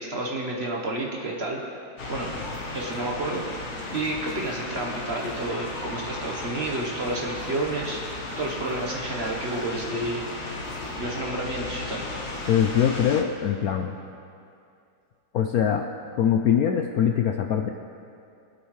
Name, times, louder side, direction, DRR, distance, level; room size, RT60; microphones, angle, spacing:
voice 1, 0.0-1.6 2.1-2.3 2.7-8.0 8.4-10.2 11.0-12.1, right 2 dB, 40° right, -1 dB, 1.2 m, -30 dB
sound 1, 2.0-13.2, left 2 dB, 45° left, 1.3 m, -35 dB
voice 2, 12.5-13.9 15.3-15.8 16.2-17.7, left 8 dB, 70° left, 4 dB, 0.9 m, -22 dB
23.0 x 8.2 x 3.2 m, 2.5 s
omnidirectional pair, 2.0 m